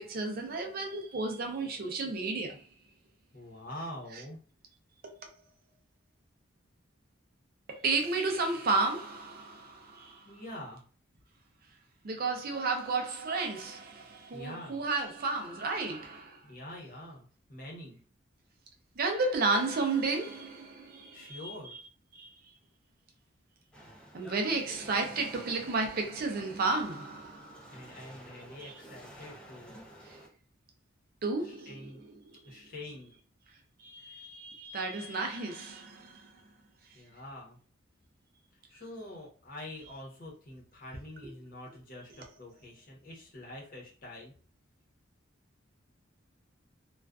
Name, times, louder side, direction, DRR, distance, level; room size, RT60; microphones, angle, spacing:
voice 1, 0.0-2.7 5.0-5.1 7.7-10.3 12.0-16.4 19.0-21.8 22.1-22.3 24.1-27.9 28.6-28.7 30.0-30.2 31.2-32.6 33.8-36.3, right 3 dB, 50° right, 0.5 m, -33 dB
voice 2, 3.3-4.4 10.2-10.8 14.3-14.8 16.4-18.0 21.1-21.7 27.7-29.8 31.4-32.0 32.4-33.1 36.9-37.6 38.7-44.3, left 1 dB, 45° left, 0.8 m, -45 dB
sound 1, 23.7-30.3, equal, 5° left, 0.5 m, -51 dB
2.4 x 2.3 x 2.3 m
head